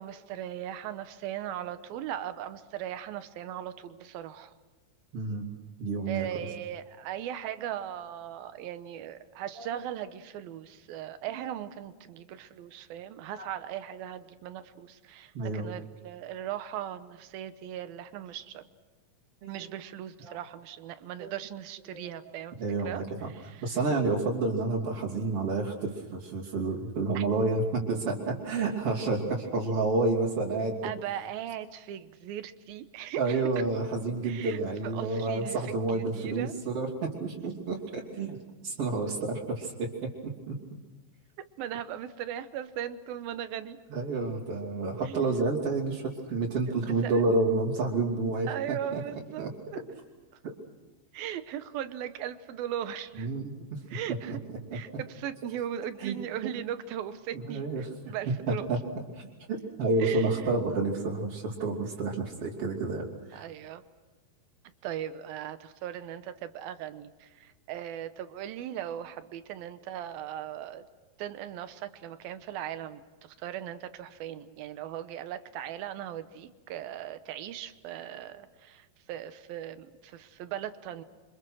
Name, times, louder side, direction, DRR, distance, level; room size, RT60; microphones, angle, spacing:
voice 1, 0.0-4.5 6.1-18.7 19.5-22.6 22.8-23.7 27.1-27.2 30.8-33.4 34.2-36.5 41.6-43.8 45.0-45.3 46.8-47.2 48.5-49.8 51.1-53.3 53.9-54.4 54.7-58.7 60.0-60.5 63.3-63.8 64.8-70.8 71.2-81.0, right 10 dB, 85° right, 11 dB, 2.9 m, -38 dB
voice 2, 5.1-5.4 5.8-6.3 9.6-9.7 13.4-13.5 15.3-15.6 19.4-19.7 20.2-20.4 21.2-21.3 21.9-22.1 22.6-23.3 23.6-30.9 33.2-38.4 38.6-39.9 40.5-40.6 43.9-48.5 48.9-49.0 49.4-49.5 53.2-53.5 54.3-54.4 56.0-56.2 57.3-57.9 58.7-58.8 59.1-63.4, right 3 dB, 40° right, -7 dB, 3.7 m, -29 dB
28.5 x 25.5 x 6.2 m, 1.2 s
omnidirectional pair, 4.2 m